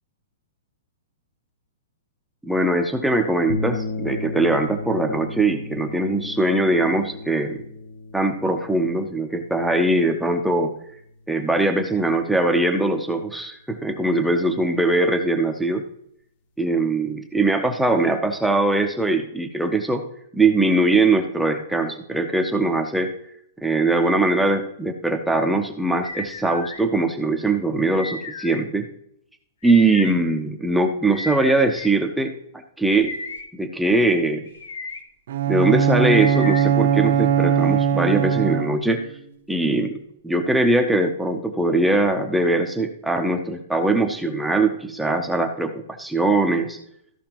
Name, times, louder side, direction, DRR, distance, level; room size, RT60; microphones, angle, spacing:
voice 1, 2.4-7.6 8.1-10.7 11.3-15.8 16.6-20.0 20.3-23.1 23.6-28.9 29.6-32.3 32.8-33.1 33.5-34.4 35.5-39.1 39.5-40.0 40.2-46.8, right 2 dB, ahead, 3 dB, 0.5 m, -21 dB
sound 1, 3.5-12.0, left 3 dB, 45° left, 0.8 m, -35 dB
sound 2, 26.0-26.8 28.0-28.6 29.6-30.1 31.1-31.9 32.9-33.4 34.5-35.0 36.1-36.7, left 3 dB, 80° left, 1.6 m, -33 dB
Bowed string instrument, 35.3-39.0, right 8 dB, 55° right, 0.7 m, -20 dB
14.0 x 5.8 x 2.9 m, 0.70 s
hypercardioid pair, 175°, 0 cm